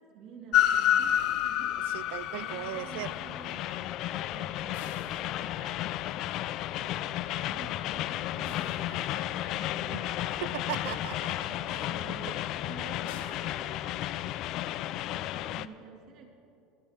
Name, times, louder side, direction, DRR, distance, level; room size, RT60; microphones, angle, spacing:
voice 1, 0.0-1.9 2.3-3.7 4.3-5.8 6.8-10.4 11.4-14.5 14.8-16.3, right 5 dB, 50° right, 1 dB, 2.2 m, -50 dB
Train, 0.5-15.7, left 12 dB, 50° left, 0.3 m, -31 dB
sound 1, 1.0-2.3 4.7-6.1 8.4-9.6 13.1-14.4, left 7 dB, 85° left, 1.1 m, -50 dB
voice 2, 1.9-3.1 9.9-10.0 10.4-12.2, right 16 dB, 75° right, 18 dB, 0.3 m, -39 dB
21.5 x 9.9 x 3.6 m, 2.6 s
supercardioid pair, 140°, 0 cm